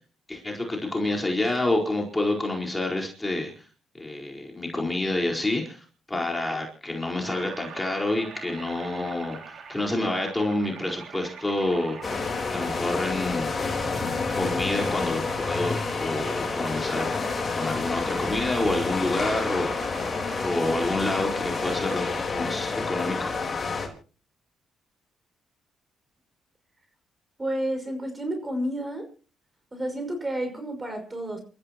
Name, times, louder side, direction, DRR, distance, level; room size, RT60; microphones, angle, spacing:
voice 1, 0.3-3.7 4.0-12.2 12.5-13.9 14.3-17.3 17.5-19.8 20.4-23.3, left 2 dB, 15° left, 0 dB, 4.6 m, -28 dB
sound 1, 7.2-22.1, right 5 dB, 60° right, 5.2 m, -43 dB
sound 2, 12.0-23.9, left 4 dB, 35° left, 4.0 m, -29 dB
voice 2, 27.4-29.1 29.7-31.4, right 1 dB, 20° right, 6 dB, 5.7 m, -30 dB
28.0 x 14.5 x 3.0 m, 0.37 s
cardioid pair, 90°, 0 cm